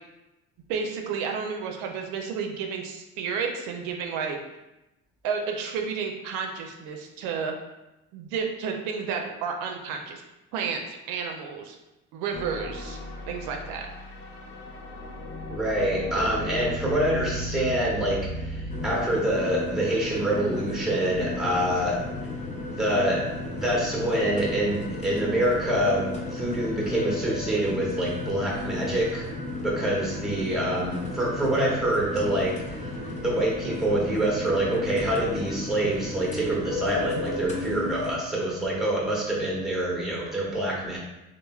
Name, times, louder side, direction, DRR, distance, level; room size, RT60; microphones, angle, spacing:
voice 1, 0.7-4.4 5.2-7.5 8.1-10.2 10.5-11.8 12.1-13.0 13.3-13.9, right 6 dB, 85° right, 3 dB, 0.5 m, -31 dB
sound 1, 12.3-18.9, equal, 75° left, 0.6 m, -36 dB
voice 2, 15.5-22.0 22.7-29.2 29.6-32.9 33.2-41.0, right 1 dB, ahead, -4 dB, 0.8 m, -26 dB
sound 2, 18.7-38.2, left 2 dB, 25° left, 0.5 m, -34 dB
3.1 x 2.0 x 2.3 m, 0.97 s
supercardioid pair, 90°, 30 cm